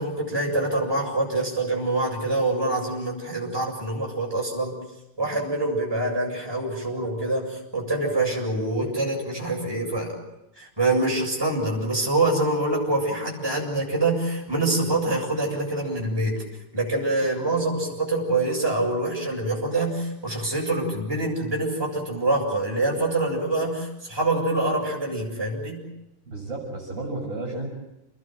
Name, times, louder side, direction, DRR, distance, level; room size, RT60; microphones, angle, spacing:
voice 1, 0.0-4.8 5.2-10.2 10.6-16.4 16.7-25.9, right 2 dB, 10° right, -2 dB, 7.4 m, -25 dB
voice 2, 26.3-27.7, right 2 dB, 35° right, 1 dB, 7.0 m, -32 dB
29.5 x 21.0 x 7.8 m, 0.91 s
omnidirectional pair, 2.4 m